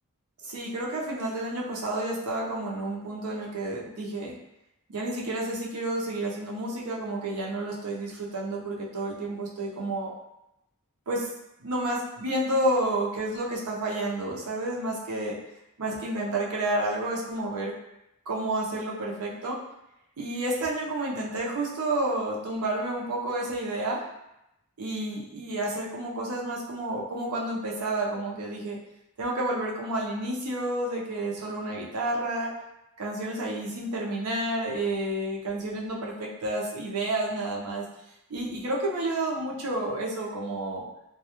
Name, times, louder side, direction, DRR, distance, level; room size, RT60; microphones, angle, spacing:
voice 1, 0.4-4.3 4.9-10.1 11.1-11.3 11.6-15.4 15.8-17.7 18.3-19.6 20.2-24.0 24.8-28.8 29.2-32.5 33.0-37.8 38.3-40.8, right 1 dB, 85° right, -3 dB, 0.5 m, -30 dB
2.2 x 2.1 x 2.8 m, 0.87 s
head